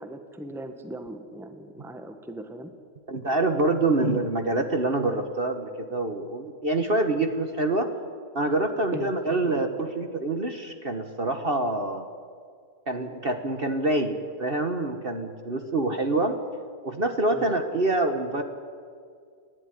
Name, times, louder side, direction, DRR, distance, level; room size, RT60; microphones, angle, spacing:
voice 1, 0.0-2.7 8.9-9.1 17.3-17.5, right 1 dB, ahead, 7 dB, 1.3 m, -39 dB
voice 2, 3.1-7.9 8.3-12.1 12.9-16.4 16.8-18.4, right 2 dB, 35° right, 6 dB, 1.5 m, -26 dB
29.5 x 11.5 x 9.8 m, 2.1 s
omnidirectional pair, 1.8 m